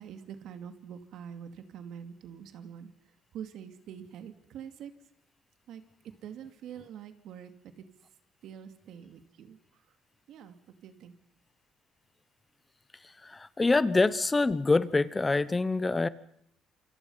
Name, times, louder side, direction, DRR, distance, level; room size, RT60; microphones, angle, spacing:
voice 1, 0.0-4.9 5.7-5.8 6.2-7.9 8.4-10.0 10.3-10.6 10.8-11.2, right 8 dB, 75° right, 8 dB, 2.6 m, -45 dB
voice 2, 13.0-16.1, left 3 dB, 20° left, 16 dB, 1.0 m, -26 dB
28.0 x 26.0 x 5.7 m, 0.68 s
cardioid pair, 100°, 0 cm